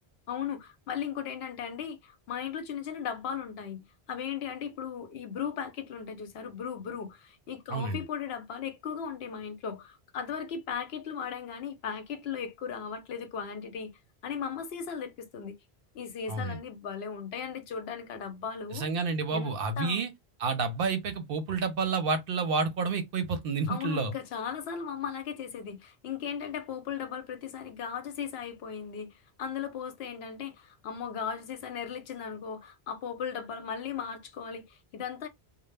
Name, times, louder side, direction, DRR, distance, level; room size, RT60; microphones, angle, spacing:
voice 1, 0.3-13.9 14.2-15.6 15.9-18.9 19.3-20.0 23.7-35.3, left 7 dB, 75° left, 0.8 m, -37 dB
voice 2, 7.7-8.0 16.3-16.6 18.7-20.1 20.4-24.1, right 4 dB, 65° right, 0.7 m, -29 dB
2.0 x 2.0 x 3.2 m
omnidirectional pair, 1.1 m